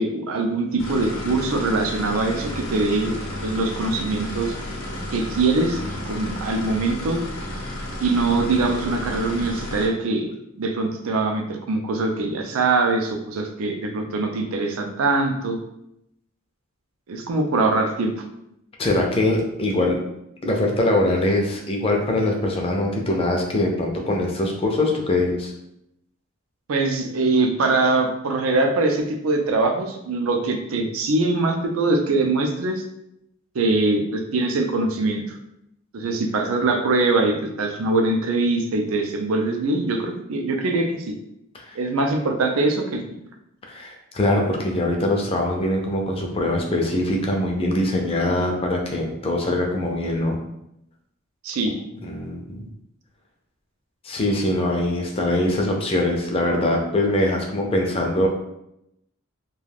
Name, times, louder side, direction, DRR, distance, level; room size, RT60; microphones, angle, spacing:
voice 1, 0.0-3.1 3.4-4.5 5.1-5.8 6.1-7.2 8.0-15.6 17.1-18.1 26.7-32.8 33.5-35.4 35.9-41.1 41.7-43.0 51.4-51.8, right 3 dB, 85° right, 4 dB, 0.4 m, -22 dB
sound 1, 0.8-9.9, left 1 dB, 85° left, 0.7 m, -32 dB
voice 2, 18.8-20.0 20.4-25.5 41.5-41.8 43.7-50.4 52.0-52.7 54.0-58.3, left 1 dB, 30° left, 1 dB, 0.4 m, -22 dB
2.3 x 2.2 x 3.3 m, 0.81 s
head